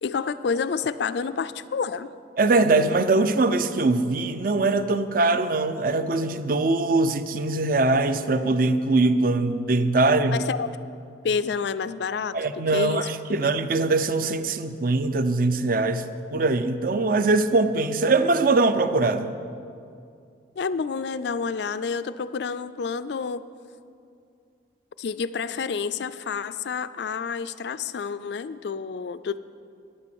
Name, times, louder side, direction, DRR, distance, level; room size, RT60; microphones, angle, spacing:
voice 1, 0.0-2.1 10.3-10.7 11.2-12.4 12.7-13.1 20.6-23.4 25.0-29.4, left 5 dB, 65° left, 14 dB, 0.4 m, -29 dB
voice 2, 2.4-10.4 12.3-16.0 16.3-19.3, right 3 dB, 50° right, 11 dB, 0.6 m, -22 dB
11.0 x 9.7 x 7.0 m, 2.5 s
head